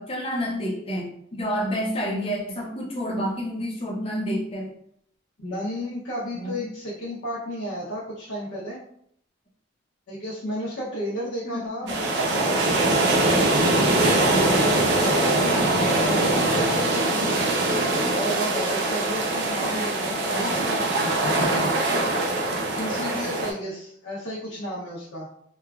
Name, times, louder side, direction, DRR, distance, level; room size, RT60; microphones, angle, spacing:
voice 1, 0.0-4.7 6.3-6.7 11.5-11.7 12.1-12.8 14.1-14.4 17.7-18.1 19.9-20.6 21.4-21.5, equal, 30° left, -2 dB, 0.6 m, -31 dB
voice 2, 5.4-8.8 10.1-11.9 12.2-17.6 18.1-21.5 22.7-25.3, equal, 90° left, -8 dB, 0.7 m, -33 dB
sound 1, 11.9-23.5, right 2 dB, 60° right, 0.5 m, -22 dB
3.0 x 2.3 x 2.3 m, 0.68 s
head